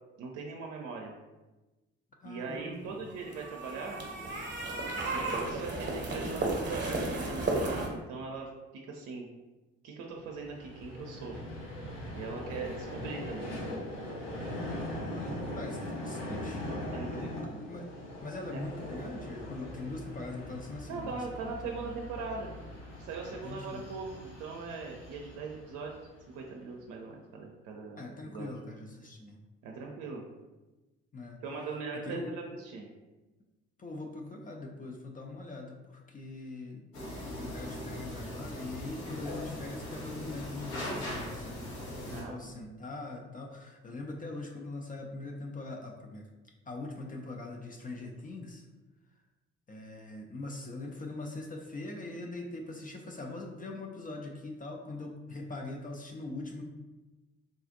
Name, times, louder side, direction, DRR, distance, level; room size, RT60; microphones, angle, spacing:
voice 1, 0.2-1.1 2.2-4.1 5.1-8.5 8.9-9.3 9.8-11.4 12.1-13.6 16.9-17.3 18.5-18.6 20.9-22.6 23.0-25.9 26.3-28.5 29.6-30.2 31.4-32.9 42.0-42.5, right 4 dB, 55° right, 0 dB, 0.5 m, -40 dB
voice 2, 2.2-3.0 14.4-14.7 15.0-17.9 18.2-21.1 21.4-21.5 21.8-21.9 23.4-23.9 28.0-29.4 31.1-31.4 32.0-32.3 33.8-36.8 37.2-41.6 42.0-46.3 46.7-48.6 49.7-56.6, left 2 dB, 25° left, 1 dB, 0.5 m, -42 dB
sound 1, 3.1-7.9, right 2 dB, 30° right, 0.9 m, -33 dB
Vehicle, 10.1-26.5, left 1 dB, 85° left, 1.3 m, -41 dB
sound 2, 36.9-42.2, left 1 dB, 70° left, 1.0 m, -39 dB
3.7 x 2.4 x 2.5 m, 1.1 s
figure-of-eight pair, 40°, 36 cm